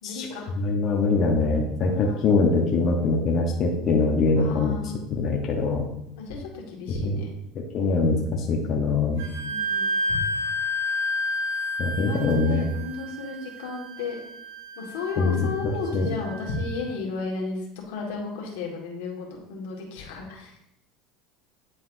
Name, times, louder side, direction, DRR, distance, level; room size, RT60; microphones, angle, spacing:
voice 1, 0.0-0.5 1.9-2.3 4.3-5.0 6.2-7.3 9.4-10.2 12.0-14.2 14.8-20.5, left 3 dB, 85° left, -1 dB, 1.7 m, -34 dB
voice 2, 0.5-4.7 5.1-5.9 7.0-7.2 7.7-9.3 11.8-12.7 15.2-16.1, left 3 dB, 45° left, -1 dB, 1.0 m, -23 dB
Wind instrument woodwind instrument, 9.2-16.6, left 1 dB, 90° right, 1.7 m, -31 dB
9.5 x 4.1 x 2.7 m, 0.80 s
supercardioid pair, 120°, 0 cm